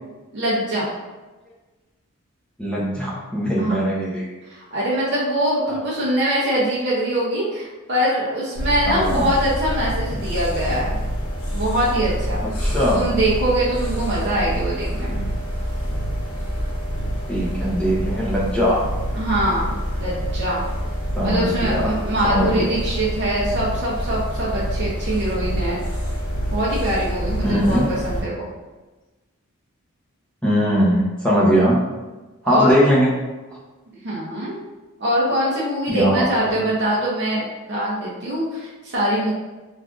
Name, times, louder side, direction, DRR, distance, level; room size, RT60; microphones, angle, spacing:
voice 1, 0.3-0.9 3.6-3.8 4.5-11.0 11.5-12.4 12.9-15.3 19.1-20.6 21.2-25.8 26.5-28.5 32.4-32.8 34.0-34.6 35.0-39.3, right 1 dB, 55° right, -7 dB, 0.6 m, -23 dB
voice 2, 2.6-4.2 8.9-9.3 12.6-13.1 17.3-18.8 21.2-21.9 22.3-22.7 27.4-27.9 30.4-31.8 32.4-33.1 35.9-36.7, equal, 5° left, -7 dB, 0.7 m, -20 dB
sound 1, 8.5-28.2, equal, 70° left, 1.4 m, -26 dB
3.4 x 2.5 x 2.4 m, 1.2 s
head